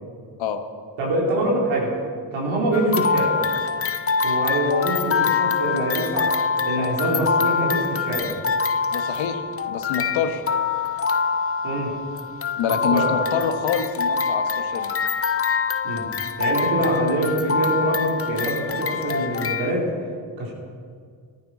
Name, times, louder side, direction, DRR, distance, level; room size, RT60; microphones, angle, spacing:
voice 1, 1.0-2.0 2.3-3.4 4.2-6.4 6.6-8.3 11.6-12.0 12.9-13.1 15.8-16.1 16.4-19.9 20.4-20.5, right 1 dB, 85° right, -3 dB, 3.7 m, -24 dB
sound 1, 2.7-19.7, left 5 dB, 30° left, 0.7 m, -24 dB
voice 2, 8.9-10.4 12.6-15.0, left 7 dB, 80° left, 7 dB, 1.3 m, -26 dB
14.0 x 13.5 x 5.9 m, 2.1 s
supercardioid pair, 50°, 45 cm